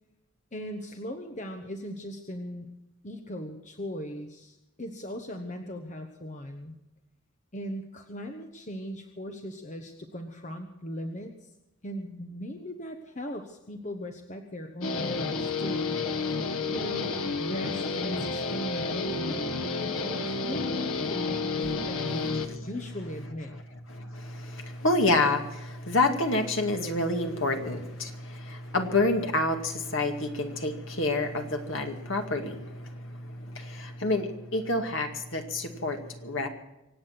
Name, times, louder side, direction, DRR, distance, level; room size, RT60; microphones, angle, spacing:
voice 1, 0.5-2.7 3.0-6.7 7.5-11.5 11.8-16.0 16.7-23.6, equal, 35° left, 5 dB, 1.2 m, -38 dB
Guitar, 14.8-22.5, left 4 dB, 80° left, 1.5 m, -30 dB
voice 2, 23.9-36.5, left 2 dB, 60° left, 4 dB, 2.2 m, -28 dB
25.0 x 8.8 x 6.0 m, 0.93 s
head